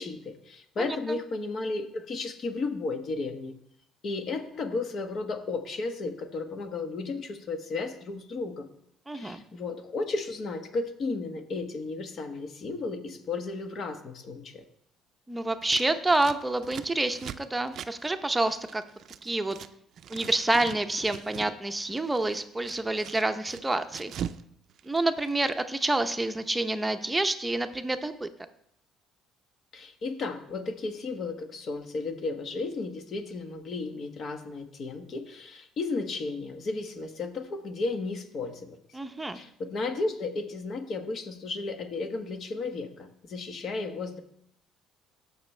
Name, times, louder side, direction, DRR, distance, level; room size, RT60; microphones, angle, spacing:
voice 1, 0.0-3.5 4.0-8.7 9.1-14.6 29.7-38.8 39.3-44.2, left 3 dB, 50° left, 7 dB, 1.3 m, -34 dB
voice 2, 0.8-1.2 9.1-9.4 15.3-18.8 19.2-19.6 20.1-24.1 24.8-28.3 38.9-39.4, right 2 dB, 10° right, 8 dB, 0.7 m, -28 dB
Scissors, 15.6-19.7 20.0-21.6 21.9-24.4 24.7-25.6, right 9 dB, 60° right, 0.4 m, -42 dB
16.0 x 6.1 x 3.3 m, 0.71 s
cardioid pair, 100°, 0 cm